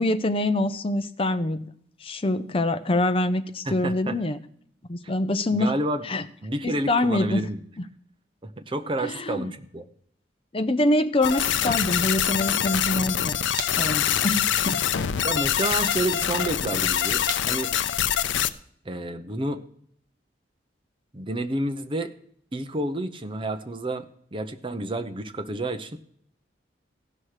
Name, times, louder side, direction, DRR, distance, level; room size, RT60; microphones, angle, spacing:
voice 1, 0.0-1.7 2.0-4.4 4.9-5.7 6.1-6.2 6.6-7.5 9.0-9.5 10.5-13.3 13.8-14.9, left 1 dB, 30° left, 10 dB, 0.6 m, -25 dB
voice 2, 3.7-4.2 5.0-5.1 5.5-6.1 6.4-7.6 8.4-9.9 15.2-17.8 18.8-19.6 21.1-22.1 22.5-26.0, right 1 dB, 30° right, 8 dB, 0.8 m, -30 dB
sound 1, 11.2-18.5, left 9 dB, 85° left, 0.5 m, -24 dB
sound 2, 17.2-18.9, right 6 dB, 50° right, 1.1 m, -44 dB
16.0 x 5.9 x 4.9 m, 0.65 s
head